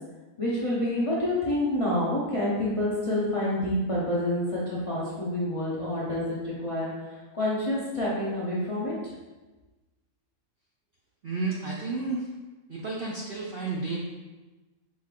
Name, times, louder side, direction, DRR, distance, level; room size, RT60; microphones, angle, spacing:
voice 1, 0.4-9.1, left 1 dB, 40° left, -7 dB, 0.5 m, -28 dB
voice 2, 11.2-12.3 12.7-14.1, right 3 dB, 85° right, -3 dB, 0.5 m, -31 dB
5.1 x 3.6 x 2.4 m, 1.2 s
omnidirectional pair, 1.6 m